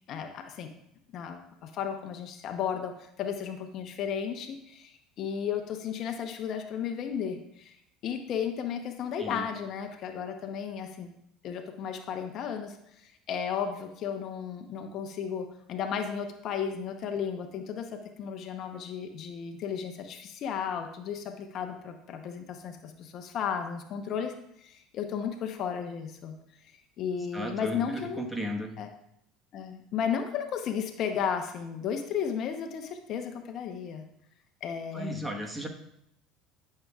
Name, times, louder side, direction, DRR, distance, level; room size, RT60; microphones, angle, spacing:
voice 1, 0.1-0.7 1.1-7.8 8.0-11.1 11.4-24.3 24.6-26.3 27.0-28.3 28.8-28.9 29.5-34.0 34.6-35.3, left 7 dB, 55° left, 6 dB, 0.9 m, -34 dB
voice 2, 27.1-28.7 34.9-35.7, right 1 dB, 10° right, 2 dB, 1.3 m, -35 dB
12.0 x 6.7 x 2.4 m, 0.76 s
supercardioid pair, 85°, 0 cm